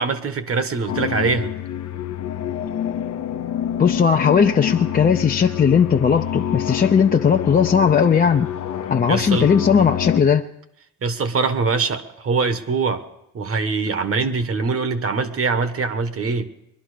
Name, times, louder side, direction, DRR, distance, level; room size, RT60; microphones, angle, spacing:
voice 1, 0.0-1.5 9.1-9.5 11.0-13.1 13.3-16.5, right 4 dB, 50° right, 10 dB, 1.4 m, -23 dB
sound 1, 0.9-10.2, left 10 dB, 65° left, 0.9 m, -27 dB
voice 2, 3.8-8.5 8.9-10.5, left 7 dB, 30° left, 3 dB, 0.6 m, -17 dB
22.0 x 11.5 x 5.0 m, 0.81 s
cardioid pair, 90°, 30 cm